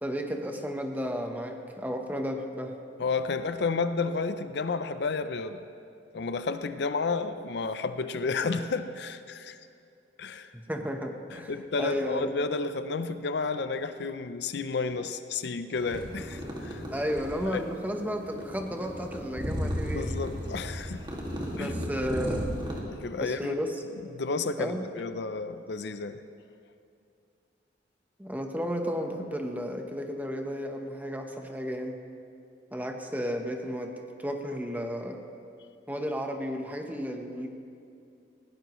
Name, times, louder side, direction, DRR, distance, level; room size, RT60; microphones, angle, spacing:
voice 1, 0.0-2.7 10.5-11.5 11.8-12.3 16.9-20.1 21.6-22.5 23.2-23.8 24.6-24.8 28.2-32.0 32.7-33.9 34.2-35.2 35.9-37.5, equal, 10° right, 4 dB, 1.0 m, -33 dB
voice 2, 3.0-5.6 6.1-9.6 10.2-10.5 11.3-16.8 17.5-17.6 19.9-21.1 21.6-21.7 22.9-23.5 24.1-26.2, left 4 dB, 65° left, 11 dB, 0.5 m, -31 dB
sound 1, 15.8-22.8, equal, 25° right, 2.1 m, -35 dB
20.0 x 17.0 x 3.1 m, 2.5 s
head